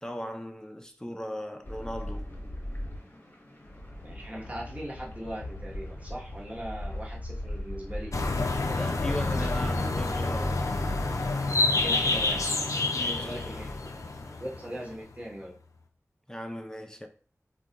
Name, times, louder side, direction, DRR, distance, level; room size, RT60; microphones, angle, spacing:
voice 1, 0.0-2.3 8.7-10.8 12.9-13.4 16.3-17.1, equal, 10° left, 0.5 m, -37 dB
sound 1, 1.6-14.9, left 1 dB, 35° left, 0.9 m, -39 dB
voice 2, 4.0-8.1 11.8-12.5 13.1-13.8 14.4-15.5, equal, 25° right, 1.0 m, -39 dB
sound 2, 8.1-15.2, left 3 dB, 70° left, 0.4 m, -28 dB
2.4 x 2.2 x 3.9 m
wide cardioid pair, 45°, 6 cm